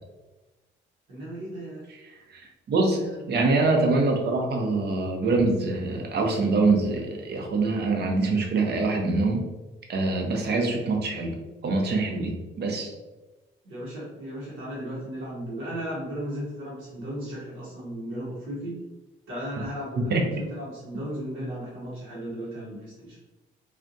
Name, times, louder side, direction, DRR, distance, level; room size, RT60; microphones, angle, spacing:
voice 1, 1.1-1.8 2.8-3.3 13.6-18.8 19.3-23.2, equal, 85° right, -8 dB, 1.4 m, -35 dB
voice 2, 2.0-3.0 3.3-9.5 9.9-11.4 11.6-12.9 20.1-20.2, right 3 dB, 55° right, 2 dB, 0.7 m, -24 dB
3.4 x 2.4 x 2.6 m, 1.1 s
cardioid pair, 90°, 20 cm